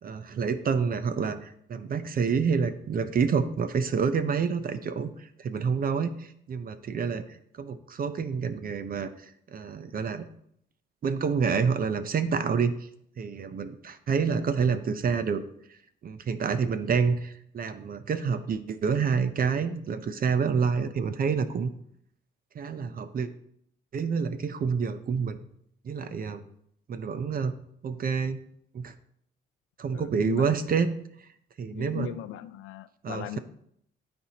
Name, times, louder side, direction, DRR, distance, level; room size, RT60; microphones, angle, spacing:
voice 1, 0.0-10.3 11.0-12.7 13.2-15.4 16.0-21.7 22.5-23.3 23.9-25.4 25.8-26.4 26.9-27.5 27.8-28.4 28.7-28.9 29.8-30.9 31.6-32.1 33.0-33.4, right 6 dB, 45° right, 11 dB, 0.6 m, -28 dB
voice 2, 29.9-30.6 31.7-33.4, left 11 dB, 85° left, 13 dB, 0.4 m, -38 dB
12.5 x 4.4 x 2.9 m, 0.71 s
cardioid pair, 90°, 20 cm